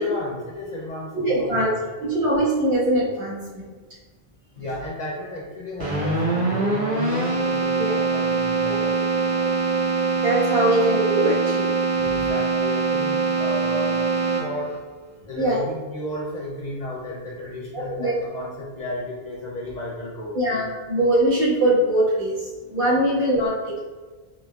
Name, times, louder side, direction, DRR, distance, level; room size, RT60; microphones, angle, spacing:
voice 1, 0.0-2.2 4.5-9.8 12.0-14.1 14.4-14.8 15.3-20.6, left 1 dB, 50° left, -4 dB, 0.6 m, -33 dB
voice 2, 1.1-3.6 7.8-8.0 8.7-8.8 10.2-12.0 15.4-15.6 17.7-18.1 20.3-23.8, right 1 dB, 65° right, -9 dB, 1.6 m, -22 dB
Keyboard (musical), 5.8-14.8, right 4 dB, 35° right, 1.0 m, -23 dB
4.1 x 2.8 x 2.2 m, 1.3 s
omnidirectional pair, 1.1 m